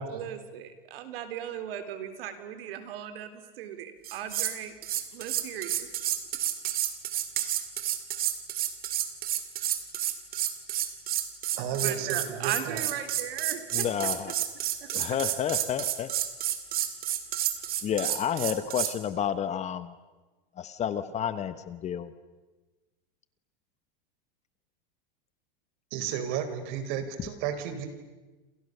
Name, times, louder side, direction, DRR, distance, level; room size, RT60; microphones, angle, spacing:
voice 1, 0.1-4.7 5.1-5.9 11.8-13.9 14.8-14.9, right 9 dB, 80° right, 9 dB, 3.7 m, -37 dB
sound 1, 4.0-4.6 4.8-18.9, right 11 dB, 30° right, 2.4 m, -30 dB
voice 2, 11.6-12.8 25.9-27.9, right 8 dB, 55° right, 9 dB, 4.3 m, -33 dB
voice 3, 13.7-14.3 14.9-16.1 17.8-19.9 20.6-22.1, left 9 dB, 25° left, 13 dB, 1.0 m, -30 dB
28.5 x 28.0 x 6.7 m, 1.2 s
supercardioid pair, 155°, 29 cm